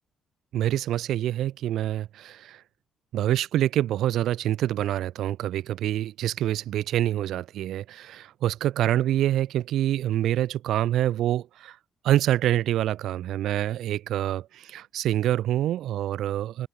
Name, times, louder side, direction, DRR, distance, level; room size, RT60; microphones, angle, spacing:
voice 1, 0.5-2.6 3.1-11.8 12.0-16.7, right 12 dB, 80° right, 3.4 m, -26 dB
open air
cardioid pair, 90°, 0 cm